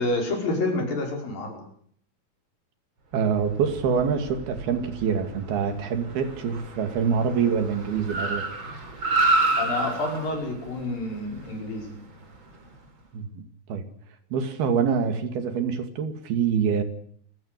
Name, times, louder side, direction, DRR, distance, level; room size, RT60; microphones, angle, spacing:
voice 1, 0.0-1.7 9.6-12.0, left 2 dB, 65° left, 2 dB, 7.1 m, -28 dB
voice 2, 3.1-8.5 13.1-13.4 13.7-13.8 14.3-16.8, right 6 dB, 85° right, 8 dB, 4.4 m, -25 dB
Car, 3.3-12.8, right 2 dB, 30° right, 4.2 m, -30 dB
27.5 x 16.5 x 8.3 m, 0.63 s
omnidirectional pair, 4.3 m